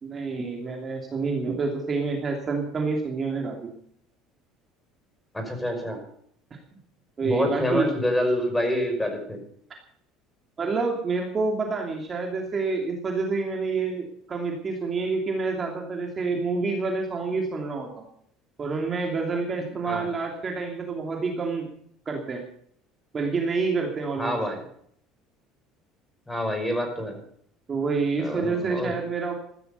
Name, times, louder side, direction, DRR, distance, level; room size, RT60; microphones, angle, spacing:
voice 1, 0.0-3.7 7.2-7.9 10.6-18.0 18.6-21.7 22.1-22.4 23.1-24.4 27.7-29.3, right 4 dB, 30° right, 2 dB, 2.9 m, -28 dB
voice 2, 5.3-6.0 7.2-9.4 19.8-20.1 24.2-24.6 26.3-27.2 28.2-28.9, left 1 dB, 10° left, 5 dB, 5.5 m, -27 dB
15.0 x 13.0 x 6.9 m, 0.65 s
cardioid pair, 125°, 0 cm